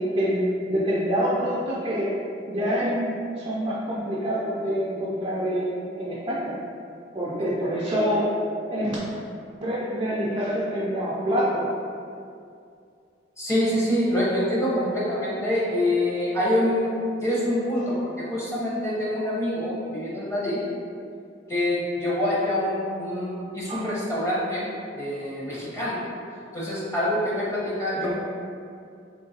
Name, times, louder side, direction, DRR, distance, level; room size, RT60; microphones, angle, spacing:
voice 1, 0.0-2.1 2.5-3.1 3.4-6.5 7.1-8.3 8.7-9.0 9.6-11.6 23.7-23.9 25.5-25.6 28.0-28.1, equal, 25° right, -7 dB, 0.4 m, -26 dB
voice 2, 13.4-16.9 17.2-20.6 21.5-24.7 25.0-26.0 26.5-28.1, left 1 dB, 15° left, -8 dB, 0.7 m, -25 dB
3.7 x 2.6 x 2.7 m, 2.4 s
head